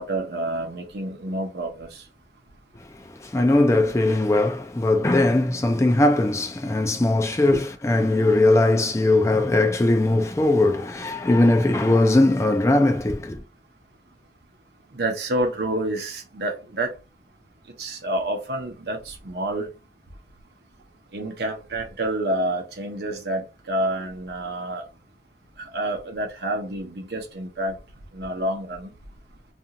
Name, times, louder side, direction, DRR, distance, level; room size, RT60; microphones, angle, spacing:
voice 1, 0.0-2.0 7.5-7.6 14.9-16.9 17.8-19.7 21.1-24.8 25.6-27.8 28.1-28.9, right 1 dB, 65° right, 0.7 m, -28 dB
voice 2, 3.0-13.4, left 2 dB, 15° left, 0.3 m, -20 dB
2.5 x 2.3 x 2.8 m
head